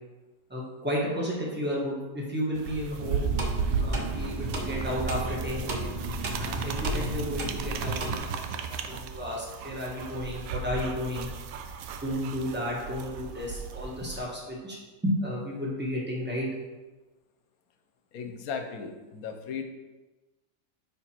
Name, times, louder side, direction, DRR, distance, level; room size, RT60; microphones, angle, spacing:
voice 1, 0.5-3.3 3.7-6.0 6.4-11.3 12.0-14.8 15.0-16.5, equal, 10° right, -4 dB, 1.2 m, -33 dB
sound 1, 2.5-14.2, right 6 dB, 75° right, 1.0 m, -35 dB
sound 2, 3.0-8.2, right 1 dB, 45° right, 0.7 m, -33 dB
voice 2, 18.1-19.6, left 6 dB, 75° left, 5 dB, 1.2 m, -36 dB
5.6 x 4.5 x 4.3 m, 1.2 s
omnidirectional pair, 1.5 m